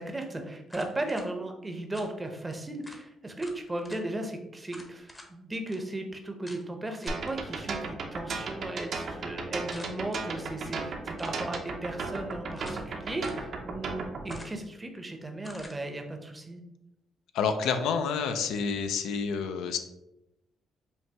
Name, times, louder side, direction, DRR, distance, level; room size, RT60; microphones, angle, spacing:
voice 1, 0.0-16.6, right 1 dB, 20° right, 4 dB, 0.6 m, -36 dB
sound 1, 0.7-1.3 1.9-2.1 2.5-2.6 2.8-3.0 3.4-4.0 4.7-5.3 5.7-5.8 6.5-6.6 7.0-7.3 9.7-10.2 11.1-11.5 12.1-12.9 13.2-13.4 14.3-14.7 15.4-15.8, left 1 dB, 15° left, 0.7 m, -48 dB
sound 2, 7.1-14.4, right 4 dB, 60° right, 0.6 m, -35 dB
voice 2, 17.3-19.8, left 6 dB, 90° left, 7 dB, 0.4 m, -28 dB
5.3 x 2.2 x 2.8 m, 0.89 s
cardioid pair, 90°, 0 cm